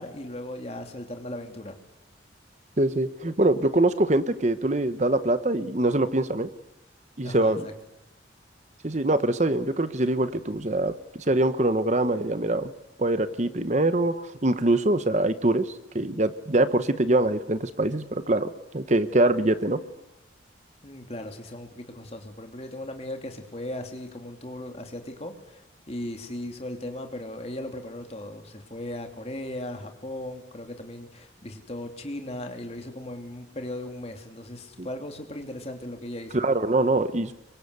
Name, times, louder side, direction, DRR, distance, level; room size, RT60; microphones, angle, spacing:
voice 1, 0.0-1.8 7.2-7.7 20.8-36.4, left 1 dB, 35° left, 5 dB, 3.0 m, -37 dB
voice 2, 2.8-6.5 7.2-7.7 8.8-10.9 11.3-12.7 13.0-19.8 34.8-34.9 36.3-37.3, right 2 dB, 35° right, 12 dB, 1.0 m, -24 dB
26.5 x 24.0 x 8.2 m, 0.93 s
head